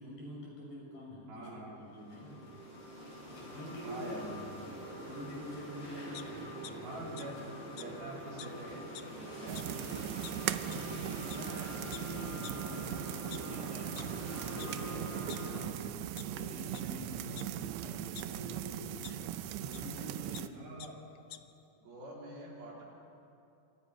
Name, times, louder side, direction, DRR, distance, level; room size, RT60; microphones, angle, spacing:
voice 1, 0.0-1.7 2.1-2.4 3.3-4.2 5.0-7.2 10.6-19.3 19.6-20.7, left 1 dB, 55° left, -3 dB, 8.3 m, -46 dB
voice 2, 1.3-2.5 3.8-4.6 6.6-10.3 20.5-21.0 21.8-22.8, right 1 dB, 60° right, -3 dB, 5.6 m, -46 dB
sound 1, 1.8-15.6, right 1 dB, 30° left, 7.3 m, -45 dB
sound 2, 6.1-6.7 7.2-7.3 7.8-7.9 8.4-8.5 8.8-9.1 9.6-9.7 10.2-10.3 10.7-10.8 11.3-11.4 11.9-12.0 12.4-12.5 13.1-14.0 14.6-14.7 15.0-15.8 16.2-16.3 16.7-16.8 17.4-18.2 19.0-19.1 19.7-19.8 20.1-20.4 20.8-20.9 21.2-21.4, left 13 dB, 85° left, 1.8 m, -47 dB
sound 3, 9.5-20.5, right 13 dB, 85° right, 2.8 m, -39 dB
27.5 x 26.0 x 5.7 m, 2.7 s
omnidirectional pair, 4.9 m